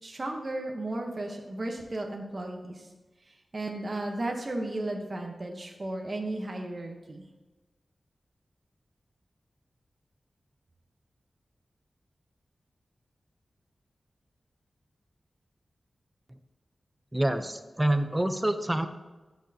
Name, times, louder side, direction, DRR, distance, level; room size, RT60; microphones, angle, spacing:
voice 1, 0.0-2.9 3.3-7.2, right 2 dB, 40° right, 2 dB, 1.0 m, -34 dB
voice 2, 17.1-18.9, right 1 dB, 15° right, 9 dB, 0.6 m, -27 dB
13.0 x 6.2 x 2.8 m, 1.2 s
wide cardioid pair, 90°, 0 cm